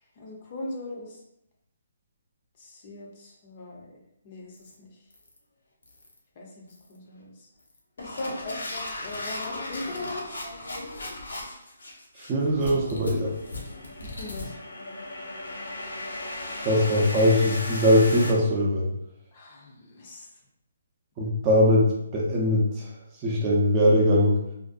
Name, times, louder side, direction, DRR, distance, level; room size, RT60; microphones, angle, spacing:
voice 1, 0.2-1.2 2.6-3.9 4.2-4.9 6.4-7.5 8.0-10.3 14.0-14.6 19.3-20.3, left 2 dB, 40° left, -2 dB, 0.6 m, -39 dB
sound 1, 4.5-4.7 5.1-5.4 5.8-6.2 6.7-7.0 7.6-18.3, left 2 dB, 85° left, 0.7 m, -36 dB
voice 2, 12.3-13.3 16.6-18.9 21.2-22.6 23.2-24.4, equal, 25° right, -4 dB, 0.5 m, -21 dB
2.5 x 2.1 x 2.5 m, 0.80 s
hypercardioid pair, 150°, 0 cm